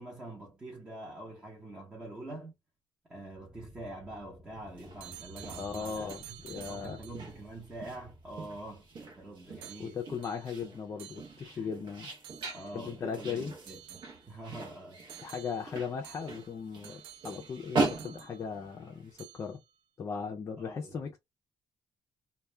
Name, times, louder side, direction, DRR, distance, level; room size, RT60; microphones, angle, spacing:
voice 1, 0.0-2.5 3.1-6.4 6.7-10.0 11.5-11.7 12.5-15.1 20.6-21.1, right 1 dB, 15° right, 0.8 m, -45 dB
sound 1, 3.1-9.6, left 1 dB, 35° right, 1.2 m, -54 dB
sound 2, 4.7-19.1, right 3 dB, 60° right, 0.8 m, -40 dB
sound 3, 5.0-7.4 9.6-11.7 12.2-13.0 13.7-14.6 15.1-18.8 19.2-19.7, right 11 dB, 90° right, 0.4 m, -51 dB
voice 2, 5.6-7.0 9.8-12.1 12.7-13.5 15.2-19.6 20.0-21.2, left 6 dB, 30° left, 0.4 m, -38 dB
2.2 x 2.1 x 3.1 m
cardioid pair, 155°, 9 cm